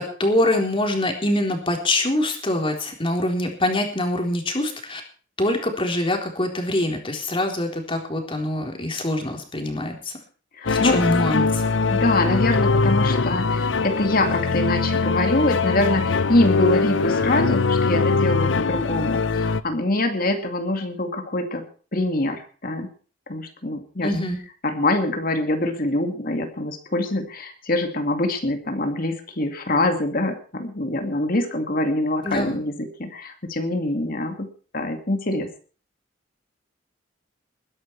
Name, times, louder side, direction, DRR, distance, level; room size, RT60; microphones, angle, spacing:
voice 1, 0.0-5.0 5.4-10.1 10.7-11.6 24.0-24.4 32.2-32.6, left 1 dB, 25° left, 2 dB, 3.8 m, -24 dB
voice 2, 10.6-11.0 11.9-21.6 21.9-22.9 23.3-24.1 24.6-34.5 34.7-35.5, left 1 dB, 50° left, 6 dB, 2.3 m, -24 dB
sound 1, 10.7-19.6, left 4 dB, 75° left, 0.8 m, -22 dB
21.5 x 10.5 x 4.7 m, 0.40 s
head